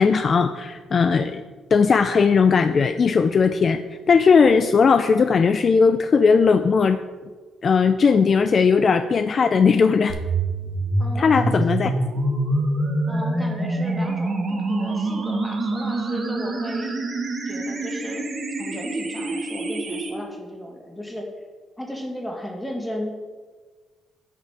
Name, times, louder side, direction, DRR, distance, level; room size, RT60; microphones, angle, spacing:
voice 1, 0.0-1.4 1.7-3.8 4.1-7.0 7.6-10.2 11.2-11.9, left 5 dB, 45° left, 10 dB, 0.4 m, -18 dB
sound 1, 10.1-20.1, right 2 dB, 45° right, 1.9 m, -26 dB
voice 2, 11.0-12.0 13.1-17.0 17.5-18.2 18.6-21.3 21.8-23.1, left 1 dB, 10° left, 1 dB, 2.3 m, -35 dB
9.4 x 5.7 x 5.9 m, 1.4 s
cardioid pair, 90°, 0 cm